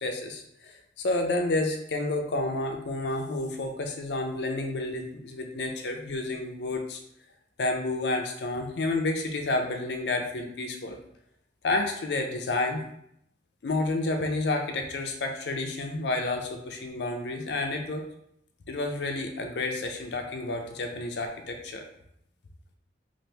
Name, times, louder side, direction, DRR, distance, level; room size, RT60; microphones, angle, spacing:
voice 1, 0.0-7.0 7.6-11.0 11.6-12.8 13.6-18.0 18.7-21.8, left 2 dB, 75° left, 4 dB, 0.5 m, -30 dB
2.9 x 2.5 x 3.2 m, 0.74 s
head